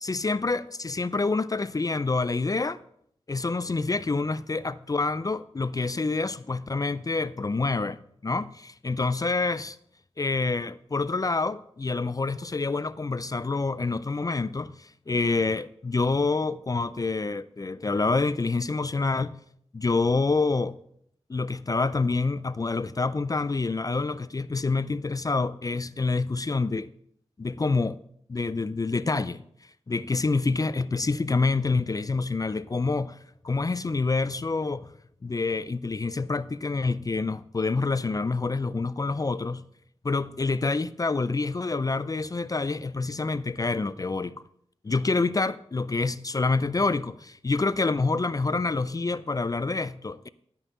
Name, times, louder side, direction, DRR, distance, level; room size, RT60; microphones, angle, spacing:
voice 1, 0.0-2.8 3.3-9.8 10.2-19.3 19.7-20.8 21.3-26.9 27.4-28.0 28.3-29.4 29.9-33.2 33.4-34.9 35.2-39.6 40.0-44.4 44.8-50.3, left 3 dB, 35° left, 0.4 m, -27 dB
12.5 x 5.5 x 5.4 m
wide cardioid pair, 75°, 11 cm